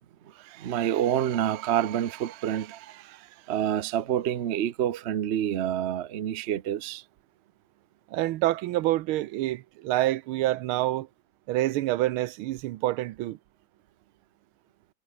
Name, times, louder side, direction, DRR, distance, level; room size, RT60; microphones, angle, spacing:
voice 1, 0.2-7.0, right 10 dB, 65° right, 0.6 m, -28 dB
voice 2, 8.1-11.1 11.5-13.4, right 16 dB, 85° right, 1.5 m, -27 dB
omnidirectional pair, 2.3 m